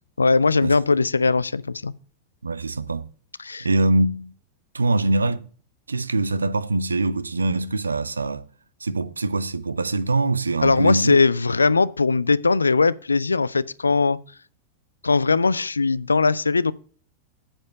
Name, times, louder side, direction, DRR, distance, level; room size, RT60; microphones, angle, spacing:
voice 1, 0.2-1.9 3.4-3.7 10.6-14.2 15.0-16.7, left 4 dB, 80° left, 0.4 m, -20 dB
voice 2, 2.4-3.0 3.6-4.3 4.7-5.4 5.9-8.4 8.8-11.2 11.7-11.8, right 2 dB, 75° right, 0.6 m, -23 dB
8.9 x 7.2 x 5.4 m
figure-of-eight pair, 90°, 0 cm